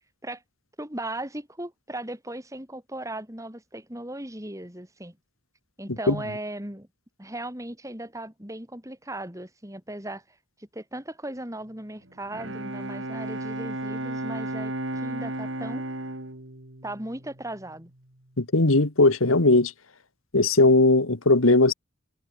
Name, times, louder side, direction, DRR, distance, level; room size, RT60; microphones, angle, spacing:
voice 1, 0.8-5.2 5.8-6.9 7.2-10.2 10.6-14.7 15.0-15.8 16.8-17.9, right 1 dB, 15° right, 4.1 m, -37 dB
Bowed string instrument, 12.1-17.8, right 1 dB, 70° right, 3.1 m, -34 dB
voice 2, 18.4-19.7 20.3-21.7, left 2 dB, 90° left, 1.9 m, -18 dB
head